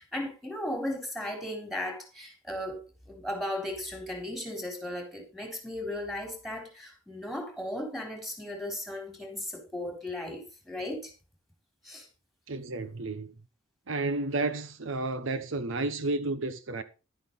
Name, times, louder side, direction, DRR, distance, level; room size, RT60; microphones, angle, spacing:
voice 1, 0.0-11.1 11.8-12.1, left 1 dB, ahead, 3.9 m, -36 dB
voice 2, 12.5-13.3 13.9-16.8, right 2 dB, 70° right, 0.9 m, -31 dB
11.5 x 9.4 x 4.1 m
head